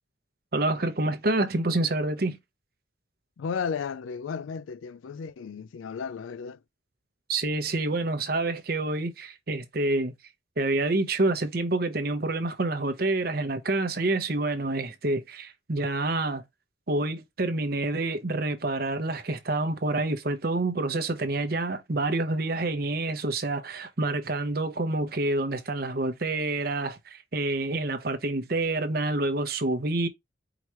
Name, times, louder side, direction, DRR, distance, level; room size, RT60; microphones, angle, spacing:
voice 1, 0.5-2.4 7.3-10.1 10.6-16.4 16.9-30.1, right 2 dB, 50° right, 0.8 m, -27 dB
voice 2, 3.4-6.6, left 6 dB, 90° left, 0.4 m, -34 dB
4.9 x 3.0 x 3.0 m
head